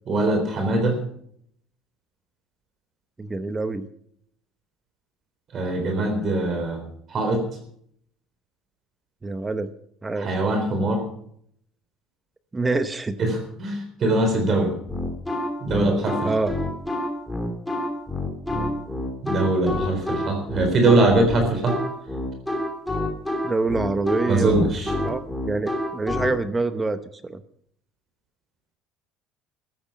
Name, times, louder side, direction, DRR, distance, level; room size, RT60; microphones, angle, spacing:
voice 1, 0.1-1.0 5.5-6.8 7.1-7.5 10.2-11.0 13.2-14.8 15.6-16.3 19.2-21.8 24.3-24.9, right 2 dB, 35° right, 5 dB, 3.8 m, -22 dB
voice 2, 3.2-3.9 9.2-9.7 10.0-10.3 12.5-13.2 16.2-16.6 23.4-24.7 25.0-27.4, right 3 dB, 15° right, 11 dB, 0.8 m, -26 dB
sound 1, 14.9-26.3, left 1 dB, 5° left, 3.1 m, -28 dB
15.0 x 12.5 x 5.8 m, 0.68 s
cardioid pair, 145°, 0 cm